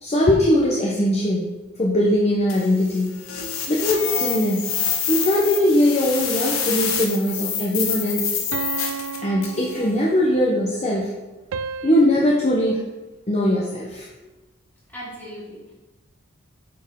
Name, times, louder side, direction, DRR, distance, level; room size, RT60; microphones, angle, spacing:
voice 1, 0.0-1.5 1.8-3.2 3.7-4.7 5.1-8.5 9.2-11.1 11.8-12.8 13.3-14.1, left 1 dB, 30° left, -4 dB, 0.8 m, -20 dB
sound 1, 2.5-9.7, left 7 dB, 85° left, 1.1 m, -27 dB
sound 2, 6.4-7.4 8.5-10.4 11.5-11.9, right 7 dB, 70° right, 0.3 m, -33 dB
voice 2, 14.9-15.7, equal, 10° left, -7 dB, 2.3 m, -38 dB
8.5 x 4.3 x 3.7 m, 1.1 s
head